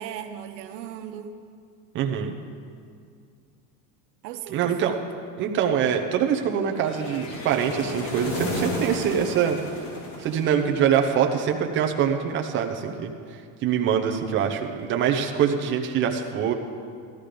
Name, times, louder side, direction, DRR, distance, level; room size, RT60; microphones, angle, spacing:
voice 1, 0.0-1.4 4.2-5.0, right 9 dB, 85° right, 6 dB, 1.2 m, -37 dB
voice 2, 1.9-2.3 4.5-4.9 5.4-9.6 10.2-13.1 13.6-16.5, right 8 dB, 25° right, 3 dB, 0.8 m, -24 dB
sound 1, 6.8-11.0, left 1 dB, 50° left, 2.8 m, -33 dB
13.5 x 13.0 x 5.1 m, 2.3 s
supercardioid pair, 160°, 48 cm